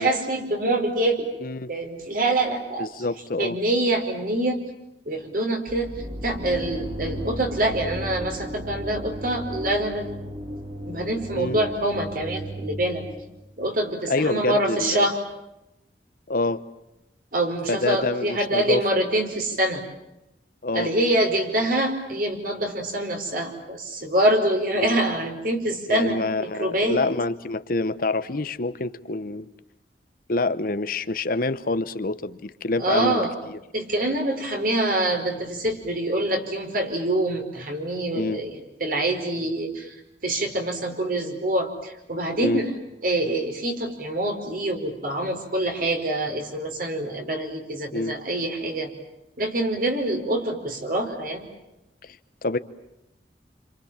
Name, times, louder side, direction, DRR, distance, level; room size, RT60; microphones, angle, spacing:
voice 1, 0.0-1.3 1.7-2.9 3.4-4.6 5.1-5.9 6.2-10.2 10.9-13.0 13.6-15.2 17.3-19.8 20.7-27.0 32.8-33.3 33.7-39.9 40.2-42.7 43.0-48.9 49.4-51.4, right 1 dB, 55° right, 4 dB, 4.9 m, -25 dB
voice 2, 1.4-1.7 2.8-3.6 11.3-11.6 14.1-15.1 16.3-16.6 17.7-18.8 20.6-20.9 24.8-25.0 25.9-29.5 30.3-33.6 38.1-38.4 42.4-42.6 47.9-48.2 52.4-52.6, left 2 dB, 55° left, 13 dB, 1.0 m, -26 dB
sound 1, 5.7-13.5, equal, 35° right, 3.4 m, -35 dB
29.0 x 27.0 x 7.4 m, 0.92 s
head